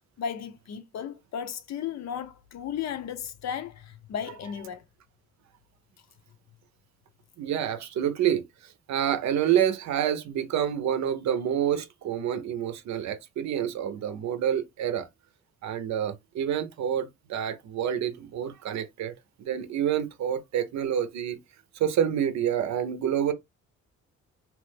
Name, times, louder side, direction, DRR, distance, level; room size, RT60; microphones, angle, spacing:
voice 1, 0.2-4.8, left 8 dB, 60° left, 0.6 m, -35 dB
voice 2, 7.4-8.4 8.9-15.1 15.6-19.1 19.4-21.4 21.8-23.3, right 9 dB, 65° right, 0.6 m, -28 dB
3.0 x 2.0 x 3.3 m
cardioid pair, 90°, 30 cm